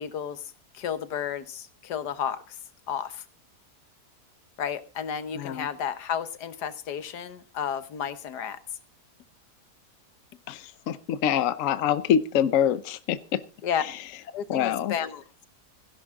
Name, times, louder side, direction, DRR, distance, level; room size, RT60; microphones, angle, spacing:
voice 1, 0.0-2.6 2.9-3.2 4.6-8.6 13.6-13.8 14.3-15.2, left 8 dB, 80° left, 13 dB, 1.6 m, -32 dB
voice 2, 10.5-13.4 14.5-14.9, left 9 dB, 60° left, 14 dB, 1.0 m, -25 dB
16.5 x 11.0 x 3.6 m, 0.33 s
omnidirectional pair, 1.7 m